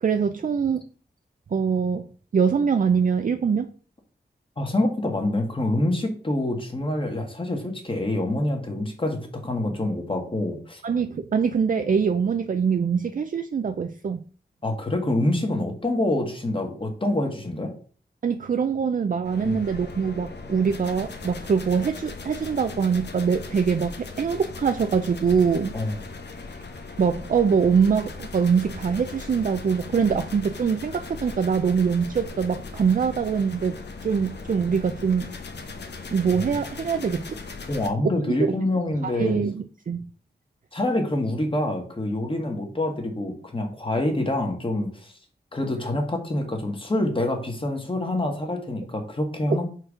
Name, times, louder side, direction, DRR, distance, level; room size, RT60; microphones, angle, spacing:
voice 1, 0.0-0.8 1.5-2.1 2.3-3.7 10.8-14.2 18.2-25.7 27.0-33.8 34.0-35.3 36.1-37.4 39.2-40.1 49.5-49.6, right 6 dB, 50° right, 8 dB, 0.5 m, -23 dB
voice 2, 4.6-10.8 14.6-17.7 19.4-19.6 25.7-26.0 36.3-36.4 37.7-39.4 40.7-45.1 45.5-49.7, left 1 dB, 30° left, 3 dB, 1.6 m, -26 dB
sound 1, 19.2-37.9, left 4 dB, 90° left, 1.1 m, -38 dB
6.0 x 4.6 x 4.9 m, 0.42 s
wide cardioid pair, 110°, 17 cm